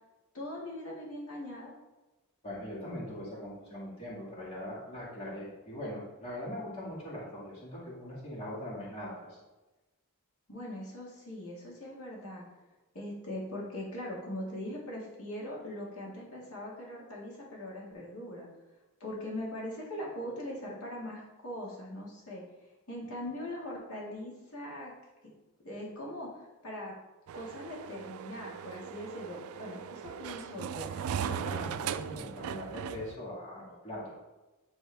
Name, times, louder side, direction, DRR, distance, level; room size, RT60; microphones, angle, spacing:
voice 1, 0.3-1.7 10.5-12.4 12.9-18.5 19.0-22.4 22.9-24.9 25.6-26.9 27.3-31.0, left 1 dB, 70° left, -4 dB, 2.0 m, -41 dB
voice 2, 2.4-9.4 31.1-34.2, left 1 dB, 25° left, -8 dB, 2.3 m, -41 dB
sound 1, 27.3-33.1, right 8 dB, 70° right, 0.3 m, -38 dB
9.8 x 3.6 x 3.5 m, 1.1 s
head